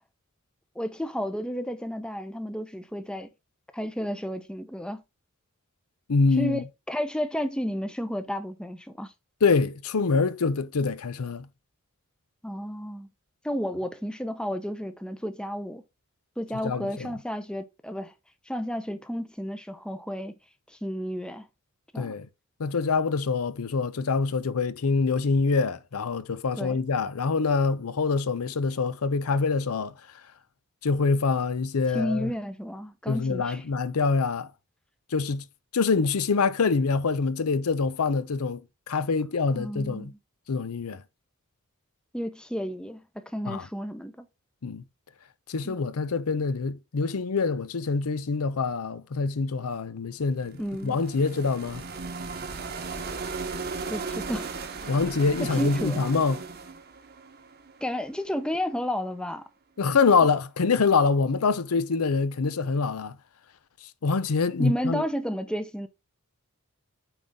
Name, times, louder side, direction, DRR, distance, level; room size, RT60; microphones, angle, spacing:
voice 1, 0.8-3.3 3.7-5.0 6.4-9.1 12.4-13.1 13.4-15.8 16.4-18.1 18.5-20.3 20.7-21.5 21.9-22.1 26.6-26.8 31.9-33.6 39.5-40.2 42.1-44.3 45.6-45.8 50.6-51.0 53.9-54.5 55.4-56.0 57.8-59.5 64.6-65.9, equal, 5° left, 0.6 m, -32 dB
voice 2, 6.1-6.6 9.4-11.5 16.5-17.2 22.0-22.3 22.6-29.9 30.8-32.3 33.1-34.5 35.1-35.4 35.7-38.6 38.9-40.1 40.5-41.0 43.5-43.7 44.6-44.8 45.5-51.8 54.9-56.4 59.8-63.2 64.0-65.0, left 4 dB, 85° left, 0.6 m, -25 dB
sound 1, 50.3-58.3, right 4 dB, 50° right, 1.0 m, -36 dB
9.0 x 3.8 x 3.6 m
head